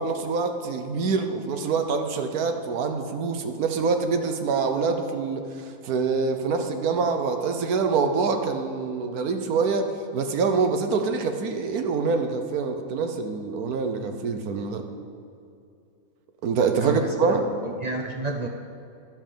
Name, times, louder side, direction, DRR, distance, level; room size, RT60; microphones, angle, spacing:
voice 1, 0.0-14.8 16.4-17.4, right 4 dB, 80° right, 6 dB, 1.4 m, -25 dB
voice 2, 16.8-17.4 17.6-18.5, right 3 dB, 55° right, 1 dB, 0.4 m, -30 dB
11.5 x 5.6 x 6.8 m, 2.6 s
omnidirectional pair, 1.6 m